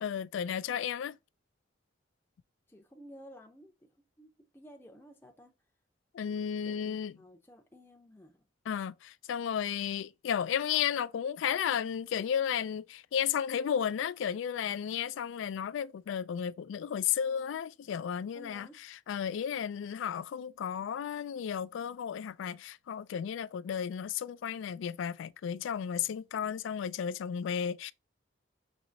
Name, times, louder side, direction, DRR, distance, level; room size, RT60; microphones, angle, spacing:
voice 1, 0.0-1.2 6.1-7.1 8.7-27.9, left 8 dB, 90° left, 0.3 m, -33 dB
voice 2, 2.7-3.9 4.2-5.5 6.7-8.5 18.3-18.8, equal, 10° left, 0.5 m, -54 dB
6.1 x 2.9 x 2.6 m
head